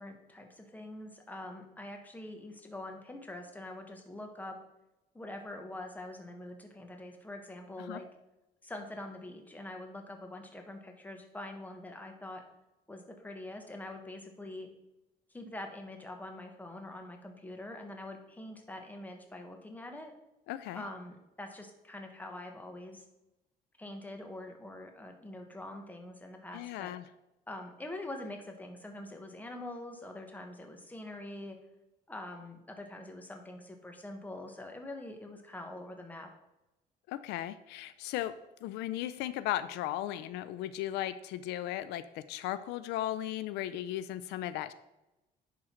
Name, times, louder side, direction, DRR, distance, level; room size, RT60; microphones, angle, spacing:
voice 1, 0.0-4.6 5.1-8.1 8.6-12.4 12.9-14.7 15.3-20.1 20.7-23.0 23.8-26.9 27.5-31.6 32.1-36.3, left 1 dB, 10° left, 4 dB, 1.3 m, -44 dB
voice 2, 20.5-20.8 26.5-27.0 37.1-38.3 38.6-44.7, left 13 dB, 85° left, 13 dB, 0.4 m, -36 dB
10.5 x 3.8 x 4.4 m, 0.96 s
cardioid pair, 110°, 17 cm